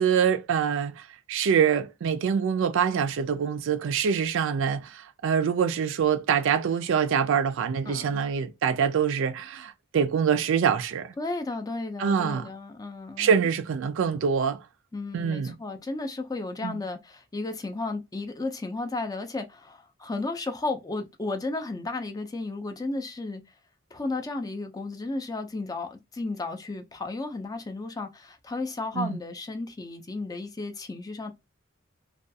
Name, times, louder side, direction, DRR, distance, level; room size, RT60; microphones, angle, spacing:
voice 1, 0.0-11.1 12.0-12.5 13.2-14.6 15.1-15.5 16.6-16.8 29.0-29.2, right 7 dB, 65° right, 0.3 m, -25 dB
voice 2, 7.8-8.2 11.2-13.3 14.9-23.4 23.9-31.3, left 3 dB, 20° left, 0.4 m, -33 dB
2.3 x 2.2 x 2.6 m
head